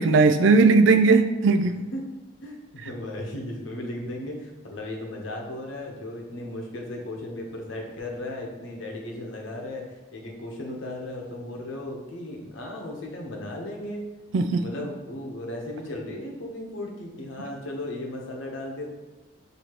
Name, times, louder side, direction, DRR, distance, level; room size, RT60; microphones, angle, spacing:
voice 1, 0.0-1.8 14.3-14.6, right 4 dB, 65° right, 9 dB, 0.3 m, -18 dB
voice 2, 2.4-14.0 14.6-18.9, left 1 dB, 80° left, 0 dB, 0.9 m, -36 dB
6.4 x 2.8 x 2.9 m, 1.1 s
head